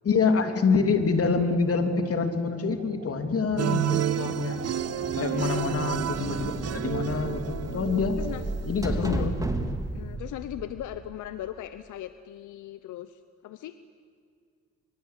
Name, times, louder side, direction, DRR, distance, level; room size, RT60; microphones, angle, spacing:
voice 1, 0.0-4.6 5.2-8.2 8.7-9.3, left 4 dB, 50° left, 7 dB, 2.9 m, -26 dB
sound 1, 0.7-7.5, right 6 dB, 70° right, 2.6 m, -46 dB
sound 2, 3.6-8.9, right 9 dB, 55° right, 1.3 m, -30 dB
sound 3, 4.7-11.5, right 2 dB, 10° right, 2.7 m, -34 dB
voice 2, 5.3-5.7 8.2-8.4 8.9-9.3 9.9-13.8, left 12 dB, 85° left, 12 dB, 1.0 m, -38 dB
25.5 x 24.5 x 8.3 m, 2.1 s
cardioid pair, 90°, 30 cm